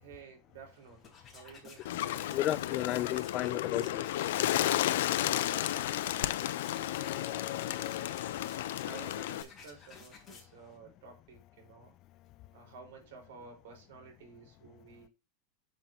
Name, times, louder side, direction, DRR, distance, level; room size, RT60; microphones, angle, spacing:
voice 1, 0.0-1.9 5.3-6.6 7.3-8.0 8.8-11.9 12.5-15.1, right 5 dB, 75° right, 4.3 m, -53 dB
sound 1, 0.7-10.8, left 5 dB, 20° left, 3.9 m, -54 dB
Bird, 1.8-9.4, left 13 dB, 80° left, 0.6 m, -32 dB
voice 2, 2.3-4.0 6.8-8.3, left 14 dB, 40° left, 0.4 m, -35 dB
8.0 x 7.5 x 2.8 m
supercardioid pair, 150°, 0 cm